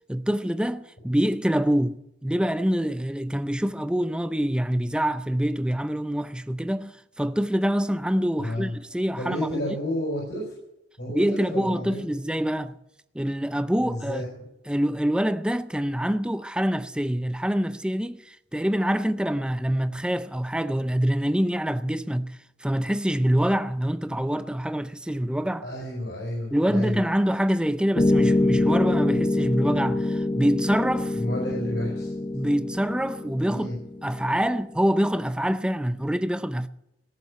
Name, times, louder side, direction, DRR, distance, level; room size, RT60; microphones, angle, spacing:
voice 1, 0.1-9.7 11.1-12.7 13.1-14.2 14.7-22.3 22.6-25.7 26.5-31.2 32.3-33.7 34.0-36.7, equal, 5° right, 0.5 m, -25 dB
voice 2, 8.4-8.8 9.2-10.5 11.0-12.0 13.8-14.4 25.6-27.0 31.1-32.1 33.5-33.8, left 1 dB, 70° left, 5.9 m, -31 dB
sound 1, 27.9-34.5, left 2 dB, 25° left, 0.8 m, -25 dB
17.5 x 7.3 x 9.9 m
head